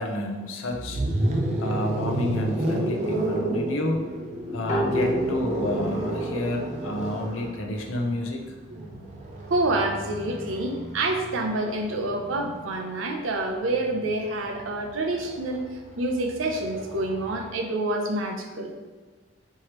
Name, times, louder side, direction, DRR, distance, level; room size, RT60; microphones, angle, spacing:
voice 1, 0.0-1.3 1.6-4.0 4.5-8.4, left 1 dB, 85° left, 3 dB, 0.6 m, -30 dB
sound 1, 0.7-12.7 13.9-17.5, right 1 dB, 35° right, 0.4 m, -31 dB
sound 2, 4.7-8.2, equal, 35° left, 0.7 m, -31 dB
voice 2, 9.5-15.6 16.0-18.7, right 2 dB, 85° right, 2 dB, 0.6 m, -27 dB
4.6 x 3.0 x 3.0 m, 1.4 s
head